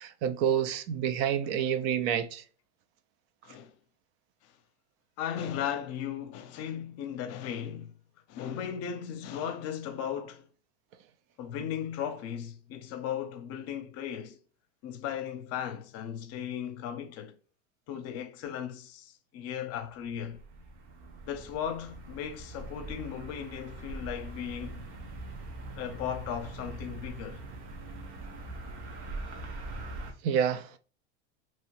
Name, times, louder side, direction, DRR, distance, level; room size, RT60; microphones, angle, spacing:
voice 1, 0.0-2.4 30.2-30.8, right 9 dB, 55° right, 0.5 m, -28 dB
voice 2, 3.4-3.8 4.4-4.5 5.2-8.0 8.3-10.5 11.4-14.4 14.8-17.3 17.9-20.4 21.3-24.9 25.7-27.4, left 9 dB, 45° left, 0.6 m, -36 dB
sound 1, 19.8-30.1, right 2 dB, 80° right, 1.0 m, -42 dB
3.0 x 2.7 x 2.9 m
supercardioid pair, 115°, 33 cm